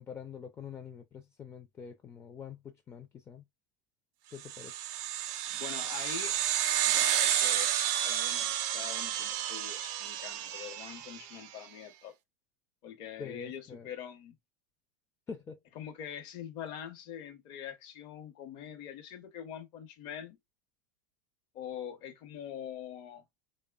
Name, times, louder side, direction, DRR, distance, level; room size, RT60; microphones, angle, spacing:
voice 1, 0.0-3.4 4.3-4.7 13.2-13.9 15.3-15.6, left 6 dB, 25° left, 0.4 m, -45 dB
sound 1, 4.5-11.3, right 11 dB, 60° right, 0.5 m, -31 dB
voice 2, 5.5-7.7 8.0-12.1 12.8-14.3 15.7-20.4 21.5-23.2, left 9 dB, 55° left, 0.8 m, -44 dB
3.1 x 2.1 x 2.3 m
hypercardioid pair, 100°, 10 cm